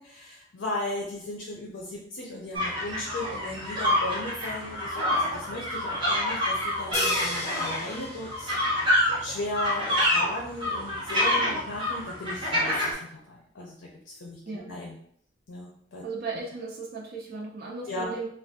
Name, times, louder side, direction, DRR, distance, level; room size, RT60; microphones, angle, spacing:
voice 1, 0.0-8.9 9.2-12.8 13.3-13.7 14.1-14.4 14.7-14.9 15.5-16.0 17.9-18.1, left 2 dB, 85° left, -3 dB, 0.6 m, -36 dB
sound 1, 2.5-12.9, left 1 dB, 25° right, 1.0 m, -27 dB
sound 2, 6.9-9.1, left 1 dB, 40° left, 0.8 m, -35 dB
voice 2, 16.0-18.3, right 4 dB, 55° right, -3 dB, 0.5 m, -36 dB
2.5 x 2.3 x 3.5 m, 0.65 s
head